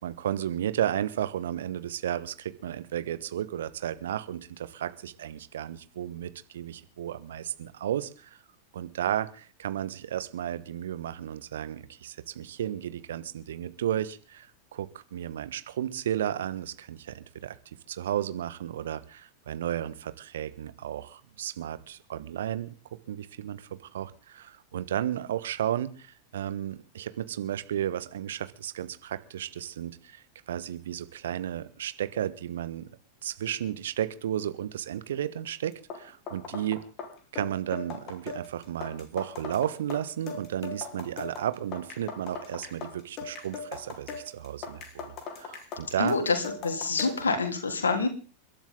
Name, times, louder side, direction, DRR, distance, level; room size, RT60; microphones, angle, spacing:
voice 1, 0.0-8.3 8.7-14.5 14.7-17.5 17.9-22.7 23.1-32.9 33.2-36.8 37.3-46.2, right 11 dB, 60° right, 13 dB, 1.3 m, -33 dB
sound 1, 35.7-47.3, left 5 dB, 35° left, 4.2 m, -40 dB
voice 2, 46.0-48.1, left 4 dB, 70° left, 4 dB, 3.7 m, -27 dB
29.5 x 12.0 x 3.9 m, 0.38 s
figure-of-eight pair, 90°, 0 cm